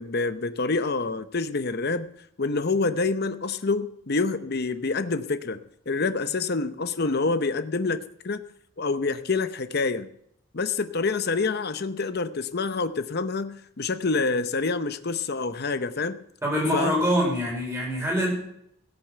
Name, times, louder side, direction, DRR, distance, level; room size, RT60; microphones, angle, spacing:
voice 1, 0.0-2.1 2.4-5.6 5.9-8.4 8.8-10.1 10.5-16.2 16.7-16.9, left 3 dB, 50° left, 11 dB, 0.7 m, -27 dB
voice 2, 16.4-18.3, equal, 10° right, -2 dB, 5.0 m, -24 dB
16.5 x 7.0 x 7.9 m, 0.74 s
head